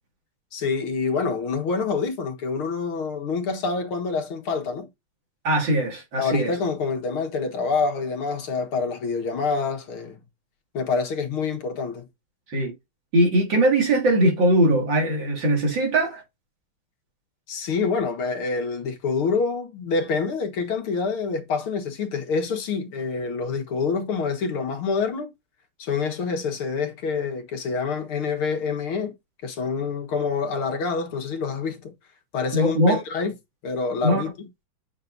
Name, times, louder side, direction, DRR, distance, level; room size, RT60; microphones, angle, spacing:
voice 1, 0.5-4.9 6.2-10.2 10.7-12.0 17.5-25.3 25.8-29.1 29.4-31.9 32.3-33.3 33.6-34.5, left 4 dB, 75° left, 2.4 m, -26 dB
voice 2, 5.4-6.5 12.5-12.7 13.1-16.2 32.5-33.0 34.0-34.2, right 1 dB, 60° right, 3.0 m, -20 dB
8.5 x 6.1 x 2.6 m
omnidirectional pair, 2.3 m